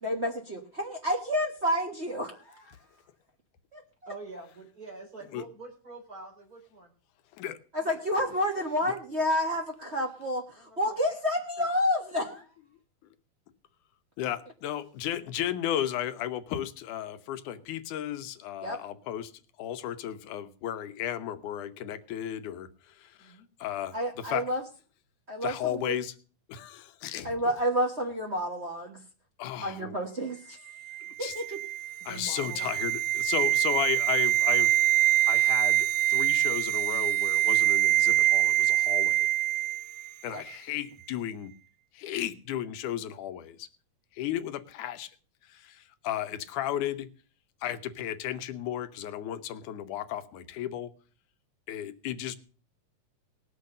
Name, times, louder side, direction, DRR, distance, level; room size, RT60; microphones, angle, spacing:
voice 1, 0.0-2.7 3.7-3.8 7.7-12.4 18.6-18.8 23.9-24.6 25.3-26.0 27.2-29.0 29.6-30.6 31.2-31.6 40.3-40.4, equal, 50° right, 0 dB, 0.7 m, -30 dB
voice 2, 4.1-6.9 7.8-8.0 10.5-11.0 23.2-23.5 27.1-27.4 32.0-32.9, right 3 dB, 30° right, 0 dB, 4.4 m, -46 dB
voice 3, 14.2-19.3 19.6-24.4 25.4-26.1 26.5-27.3 29.4-30.0 31.2-31.4 32.1-34.8 35.2-39.3 40.2-41.5 41.9-43.7 44.1-45.1 45.5-47.1 47.6-50.9 51.7-52.4, left 11 dB, 90° left, 10 dB, 2.4 m, -34 dB
sound 1, 30.9-40.1 40.4-40.5, right 14 dB, 80° right, 2.2 m, -25 dB
18.5 x 6.4 x 6.5 m, 0.40 s
omnidirectional pair, 3.4 m